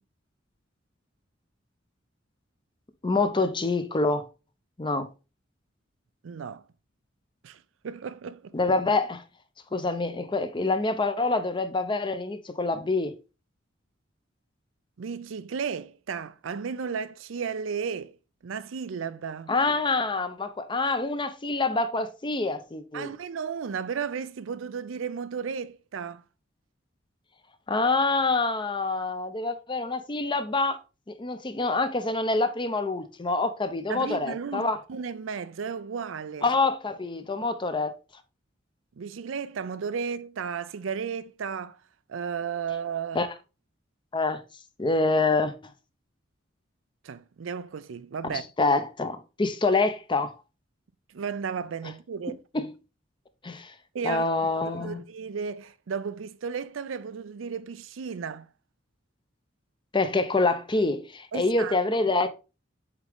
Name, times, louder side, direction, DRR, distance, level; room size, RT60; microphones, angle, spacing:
voice 1, 3.0-4.3 4.8-5.1 8.5-9.2 9.7-13.1 19.5-23.1 27.7-30.8 31.1-34.8 36.4-38.0 43.1-43.3 44.1-44.4 44.8-45.5 48.3-50.3 52.5-52.7 53.4-53.7 54.0-55.0 59.9-62.3, left 3 dB, 25° left, 0.6 m, -26 dB
voice 2, 6.2-6.6 7.4-8.6 15.0-18.2 18.4-19.5 22.9-26.2 33.9-36.5 39.0-41.8 42.1-43.2 47.0-48.5 51.1-52.4 53.9-54.3 54.6-58.5 61.3-61.8, right 6 dB, 85° right, 0.5 m, -34 dB
8.1 x 3.7 x 3.5 m
head